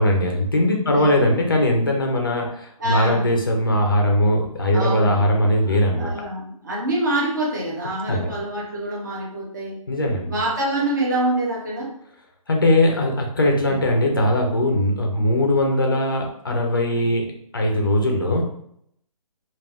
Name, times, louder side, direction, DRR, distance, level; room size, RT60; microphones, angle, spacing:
voice 1, 0.0-6.1 8.1-8.3 9.9-10.4 12.5-18.5, left 1 dB, 40° left, 1 dB, 0.4 m, -20 dB
voice 2, 0.9-1.2 2.8-3.3 4.7-5.3 5.7-9.8 10.3-11.9 13.6-13.8 16.9-17.1, right 1 dB, 30° right, -4 dB, 0.5 m, -26 dB
2.2 x 2.2 x 3.3 m, 0.70 s
hypercardioid pair, 180°, 19 cm